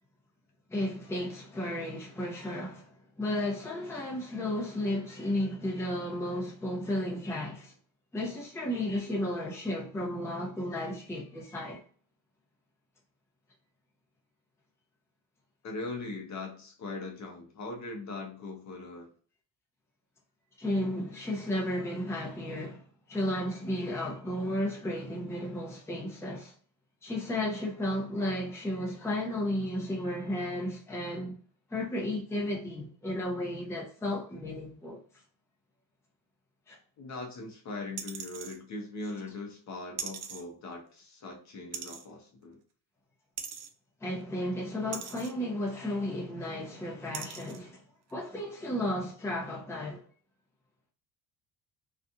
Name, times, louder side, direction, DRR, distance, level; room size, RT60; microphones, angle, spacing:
voice 1, 0.7-7.7 8.1-11.8 20.6-26.5 27.0-31.4 31.7-35.0 36.7-36.8 44.0-47.8 48.1-50.0, left 1 dB, 5° left, 0.7 m, -33 dB
voice 2, 15.6-19.1 37.0-42.6, left 3 dB, 40° left, 0.8 m, -40 dB
sound 1, 38.0-38.6 40.0-40.4 41.7-42.1 43.4-43.7 44.9-45.3 46.4-46.5 47.1-47.6 48.1-48.2, right 7 dB, 40° right, 0.4 m, -39 dB
2.7 x 2.4 x 2.4 m
cardioid pair, 135°, 42 cm